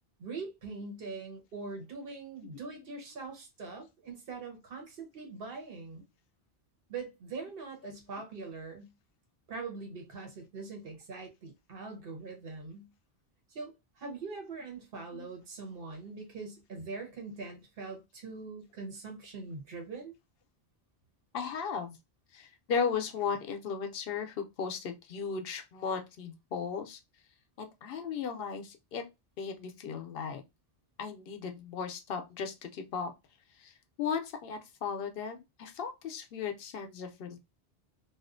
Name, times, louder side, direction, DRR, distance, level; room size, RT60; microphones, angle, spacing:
voice 1, 0.2-6.0 6.9-8.9 9.5-12.9 13.5-20.1, right 4 dB, 65° right, 1.1 m, -42 dB
voice 2, 21.3-22.0 22.3-27.0 27.6-29.1 29.4-30.4 31.0-33.1 33.5-37.4, left 6 dB, 70° left, 0.7 m, -36 dB
2.4 x 2.4 x 2.5 m
omnidirectional pair, 1.1 m